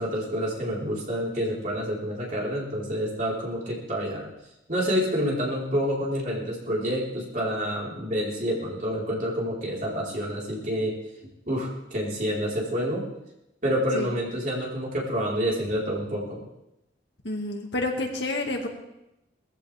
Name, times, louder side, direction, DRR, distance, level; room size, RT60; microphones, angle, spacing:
voice 1, 0.0-4.3 4.7-11.0 11.5-13.1 13.6-16.4, equal, 45° right, -4 dB, 4.4 m, -28 dB
voice 2, 17.2-18.7, left 2 dB, 70° left, 2 dB, 2.2 m, -29 dB
20.0 x 14.5 x 3.5 m, 0.87 s
head